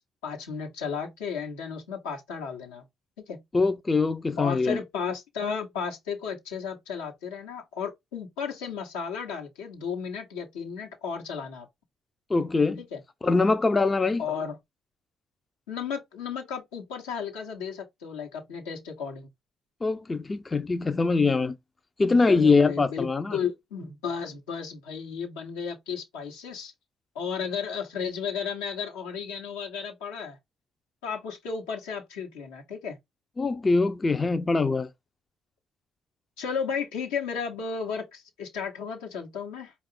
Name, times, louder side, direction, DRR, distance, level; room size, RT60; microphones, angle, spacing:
voice 1, 0.2-2.8 3.3-3.4 4.4-11.7 12.8-13.0 14.2-14.6 15.7-19.3 22.3-26.7 27.1-30.4 31.0-33.0 36.4-39.7, left 6 dB, 80° left, 1.1 m, -34 dB
voice 2, 3.5-4.8 12.3-12.8 13.2-14.2 19.8-21.6 22.0-23.4 33.4-34.9, left 3 dB, 30° left, 0.4 m, -23 dB
4.7 x 2.4 x 3.6 m
hypercardioid pair, 50°, 0 cm